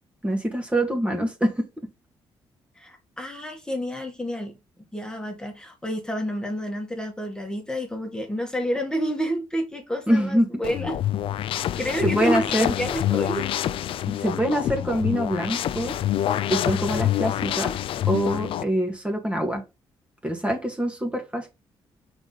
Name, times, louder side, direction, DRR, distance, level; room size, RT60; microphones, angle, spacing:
voice 1, 0.2-1.7 10.1-10.5 12.0-12.7 14.2-16.0 16.5-17.7 18.1-19.6 20.2-21.5, equal, 15° right, 1.9 m, -24 dB
voice 2, 2.8-4.6 4.9-11.0 11.8-13.8, equal, 10° left, 1.9 m, -29 dB
sound 1, 10.6-18.6, left 12 dB, 70° left, 0.4 m, -26 dB
5.7 x 4.3 x 4.1 m
cardioid pair, 85°, 9 cm